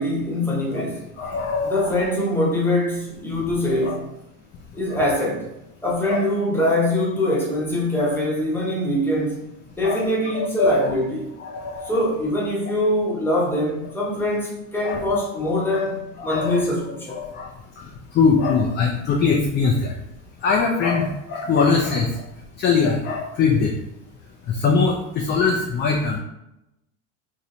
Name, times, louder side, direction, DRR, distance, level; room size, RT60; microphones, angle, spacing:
voice 1, 0.0-1.1 1.6-4.1 4.7-5.5 5.8-9.5 9.8-11.3 11.8-17.2, left 1 dB, 5° left, 0.9 m, -23 dB
voice 2, 1.2-1.9 3.8-4.0 6.1-6.2 9.8-10.1 10.3-10.9 11.4-11.9 14.8-15.0 16.2-16.6 17.2-17.5 18.2-19.9 20.4-22.1 22.6-23.7 24.6-26.2, left 4 dB, 30° left, 0.4 m, -21 dB
3.1 x 2.8 x 2.6 m
supercardioid pair, 105°, 40 cm